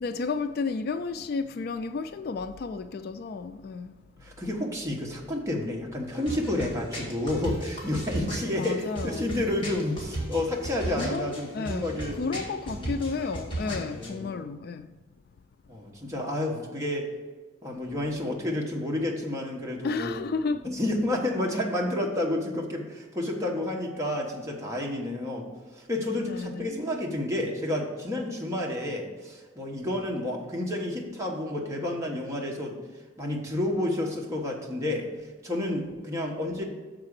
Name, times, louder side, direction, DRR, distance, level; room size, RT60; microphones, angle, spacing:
voice 1, 0.0-4.0 8.6-9.3 11.0-14.9 19.8-20.7 26.2-26.8, left 4 dB, 50° left, 0.3 m, -32 dB
voice 2, 4.2-12.2 12.7-12.9 13.7-14.4 15.7-17.1 17.6-20.2 20.7-25.5 25.7-32.8 33.2-35.1 35.4-36.6, left 1 dB, 15° right, 1.1 m, -30 dB
sound 1, 6.1-14.1, right 1 dB, 25° left, 1.9 m, -36 dB
6.6 x 4.8 x 6.5 m
head